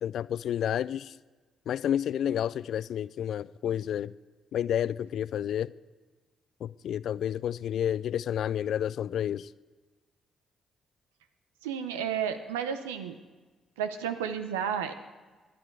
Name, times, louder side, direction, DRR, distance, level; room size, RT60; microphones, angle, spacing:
voice 1, 0.0-1.2 1.7-4.1 4.5-5.7 6.6-9.5, left 10 dB, 65° left, 19 dB, 0.3 m, -30 dB
voice 2, 11.6-13.2 13.8-14.9, right 8 dB, 90° right, 9 dB, 0.8 m, -32 dB
20.0 x 10.5 x 4.7 m, 1.3 s
hypercardioid pair, 45°, 0 cm